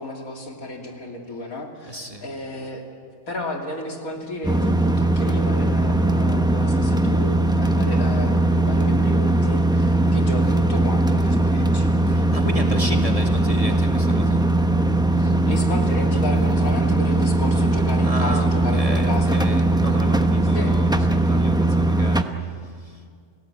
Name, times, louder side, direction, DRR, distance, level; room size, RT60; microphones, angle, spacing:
voice 1, 0.0-2.8 3.3-11.9 15.2-19.4 20.5-20.8, left 1 dB, 75° left, 2 dB, 3.2 m, -33 dB
voice 2, 1.9-2.4 12.1-14.5 18.0-22.3 22.6-23.0, right 1 dB, 25° right, 3 dB, 2.1 m, -33 dB
sound 1, 4.4-22.2, right 2 dB, 5° right, 0.7 m, -19 dB
29.0 x 17.5 x 8.8 m, 2.2 s
omnidirectional pair, 1.5 m